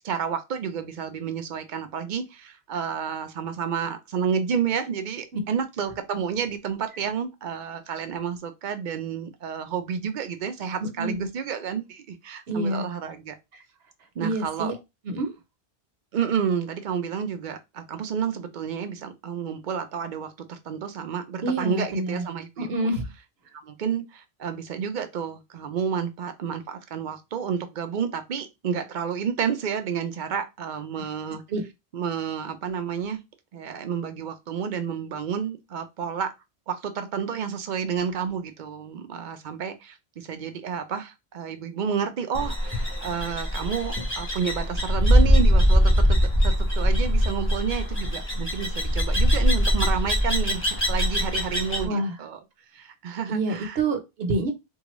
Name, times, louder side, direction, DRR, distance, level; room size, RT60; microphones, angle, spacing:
voice 1, 0.0-13.3 14.2-14.7 16.1-22.7 23.5-31.4 31.9-33.2 33.5-36.3 36.7-52.4 52.7-53.8, right 7 dB, 55° right, 0.6 m, -30 dB
voice 2, 10.8-11.3 12.5-12.9 13.5-13.6 14.2-14.7 15.0-15.3 21.4-22.2 22.6-23.1 31.5-31.6 51.8-52.2 53.3-54.5, right 2 dB, 70° right, 1.0 m, -27 dB
sound 1, 42.3-51.9, equal, 10° left, 0.9 m, -22 dB
3.6 x 2.3 x 3.0 m
omnidirectional pair, 1.1 m